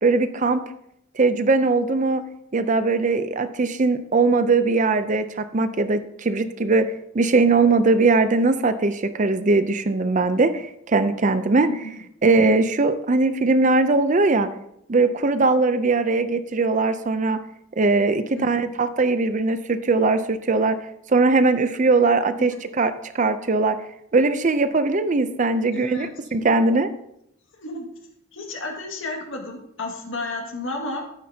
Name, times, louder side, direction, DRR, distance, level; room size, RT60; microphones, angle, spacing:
voice 1, 0.0-0.6 1.2-2.2 2.5-11.7 12.2-14.5 14.9-17.4 17.8-20.8 21.1-23.8 24.1-26.9, right 3 dB, 35° right, 11 dB, 0.5 m, -20 dB
voice 2, 11.7-12.1 18.3-18.8 22.4-22.5 25.7-26.1 26.4-26.5 27.6-27.9 28.3-31.1, left 2 dB, 65° left, 1 dB, 2.0 m, -32 dB
12.0 x 9.6 x 2.8 m, 0.77 s
head